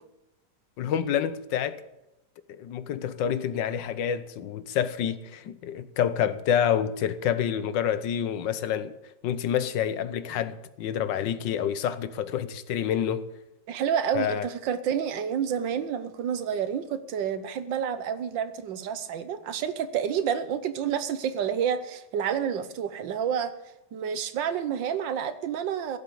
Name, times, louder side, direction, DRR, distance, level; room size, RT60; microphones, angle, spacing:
voice 1, 0.8-1.8 2.5-8.9 9.2-13.2 14.1-14.5, left 9 dB, 80° left, 1.5 m, -28 dB
voice 2, 13.7-23.5 23.9-26.0, right 8 dB, 90° right, 1.7 m, -29 dB
16.5 x 7.3 x 8.5 m
omnidirectional pair, 1.9 m